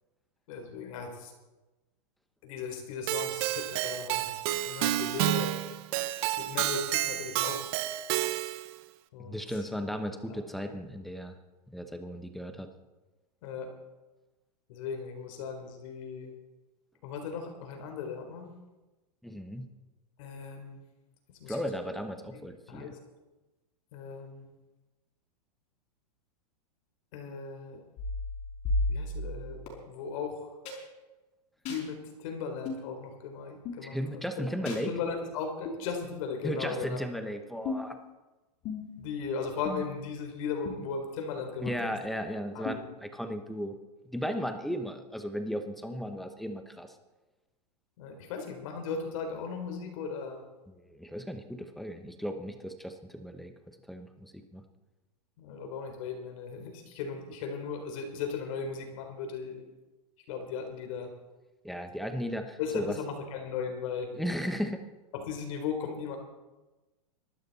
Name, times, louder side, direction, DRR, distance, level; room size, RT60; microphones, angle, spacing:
voice 1, 0.5-1.3 2.4-5.5 6.4-7.7 9.1-9.6 10.3-10.4 13.4-13.7 14.7-16.3 17.0-18.5 20.2-20.8 21.4-21.6 22.7-23.0 23.9-24.5 27.1-27.8 28.9-29.6 29.9-30.5 31.7-34.2 34.9-37.0 39.0-42.0 42.5-42.8 48.0-50.4 55.4-59.6 60.3-61.1 62.6-64.1 65.1-66.2, left 5 dB, 50° left, 4 dB, 3.9 m, -37 dB
Keyboard (musical), 3.1-8.7, right 15 dB, 40° right, 0.7 m, -30 dB
voice 2, 9.2-11.3 11.7-12.7 19.2-19.7 21.5-22.9 33.8-34.9 36.4-38.0 41.6-43.7 44.0-47.0 50.7-53.5 53.9-54.6 61.6-63.0 64.1-64.8, equal, ahead, 7 dB, 1.0 m, -35 dB
sound 1, 28.0-29.7 30.6-30.8 31.6-31.8 32.6-32.8 33.6-33.8 34.6-34.8 35.6-35.8 36.6-36.8 37.6-38.0 38.6-39.0 39.6-40.1 40.6-40.7 41.7-41.8 42.6-42.7, left 2 dB, 35° left, 5.5 m, -33 dB
24.0 x 12.5 x 4.2 m, 1.1 s
supercardioid pair, 150°, 21 cm